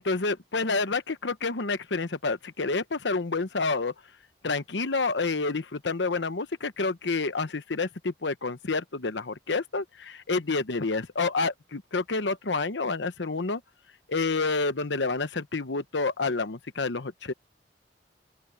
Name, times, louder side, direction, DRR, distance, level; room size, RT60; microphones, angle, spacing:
voice 1, 0.0-3.9 4.4-13.6 14.1-17.3, left 3 dB, 85° left, 1.0 m, -29 dB
open air
head